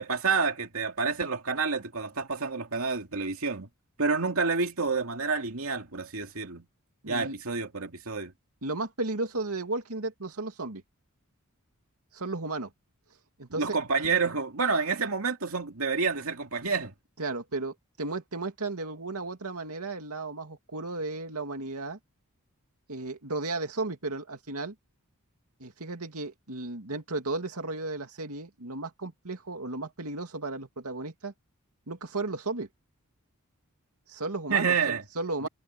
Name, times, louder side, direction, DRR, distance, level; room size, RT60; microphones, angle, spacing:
voice 1, 0.0-3.7 4.0-6.6 7.1-8.3 13.6-16.9 34.5-35.0, right 5 dB, 75° right, 2.5 m, -28 dB
voice 2, 7.0-7.4 8.6-10.8 12.1-12.7 13.4-13.8 17.2-22.0 22.9-24.7 25.6-31.3 31.9-32.7 34.1-35.5, right 2 dB, 90° right, 2.5 m, -34 dB
head